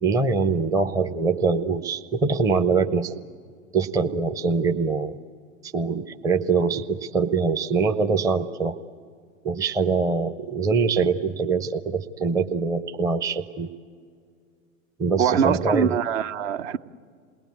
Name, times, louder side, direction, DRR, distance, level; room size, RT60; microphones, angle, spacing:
voice 1, 0.0-3.2 3.7-5.2 5.6-8.8 9.4-13.7 15.0-15.9, right 4 dB, 10° right, 0.5 m, -23 dB
voice 2, 15.2-16.8, right 8 dB, 60° right, 0.9 m, -23 dB
28.0 x 19.5 x 8.2 m
hypercardioid pair, 100°, 41 cm